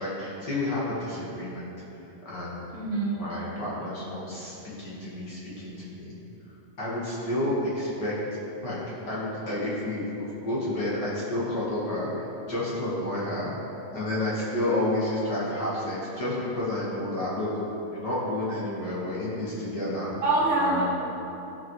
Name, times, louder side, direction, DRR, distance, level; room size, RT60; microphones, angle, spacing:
voice 1, 0.0-1.7 2.0-2.6 3.1-6.1 6.8-8.1 8.6-8.8 9.1-17.5 17.9-20.1 20.6-20.8, left 1 dB, 45° left, -7 dB, 1.7 m, -30 dB
voice 2, 2.7-3.2 14.7-14.8 20.2-20.8, right 2 dB, 60° right, -8 dB, 1.8 m, -25 dB
11.5 x 7.1 x 3.1 m, 2.9 s
omnidirectional pair, 3.3 m